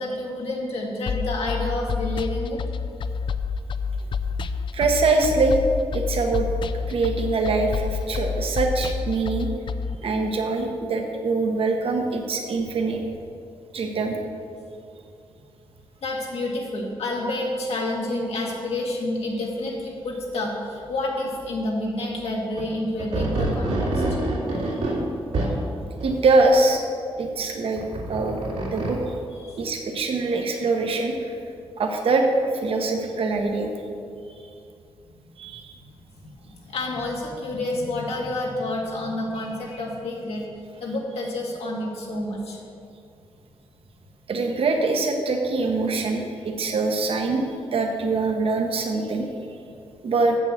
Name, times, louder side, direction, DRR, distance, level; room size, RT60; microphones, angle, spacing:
voice 1, 0.0-2.6 16.0-24.0 29.4-29.6 36.4-40.4 40.8-42.6, left 2 dB, 80° left, -2 dB, 1.9 m, -29 dB
sound 1, 1.1-9.9, left 5 dB, 55° left, 0.4 m, -28 dB
voice 2, 4.7-5.6 5.9-6.5 6.9-9.5 10.0-13.0 13.7-14.2 26.0-26.9 27.2-27.8 28.1-28.4 28.7-29.0 29.6-31.4 31.8-32.3 32.5-33.7 35.4-35.7 44.3-47.4 47.7-49.3 50.0-50.4, right 3 dB, 65° right, 3 dB, 1.1 m, -23 dB
sound 2, 22.6-22.7 23.0-25.6 26.0-26.1 27.8-29.0, right 2 dB, 85° right, 2.5 m, -26 dB
7.7 x 6.7 x 7.4 m, 2.5 s
wide cardioid pair, 120°, 10 cm